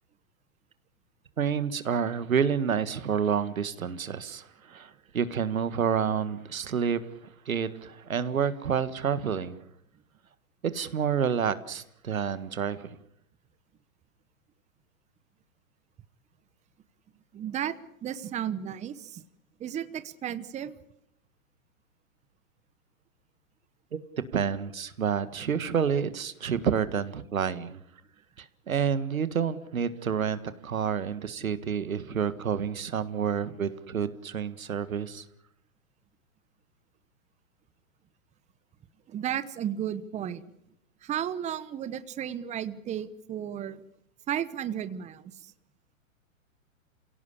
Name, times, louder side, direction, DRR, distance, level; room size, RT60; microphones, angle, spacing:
voice 1, 1.4-7.0 7.5-9.6 10.7-13.0 23.9-24.0 24.3-27.8 28.4-35.3, right 7 dB, 90° right, 14 dB, 1.8 m, -29 dB
voice 2, 17.3-17.7 18.0-19.2 19.6-20.7 39.1-40.4 41.0-43.8 44.3-45.5, right 10 dB, 15° right, 14 dB, 1.0 m, -33 dB
27.5 x 17.5 x 8.4 m, 0.75 s
hypercardioid pair, 125°, 40 cm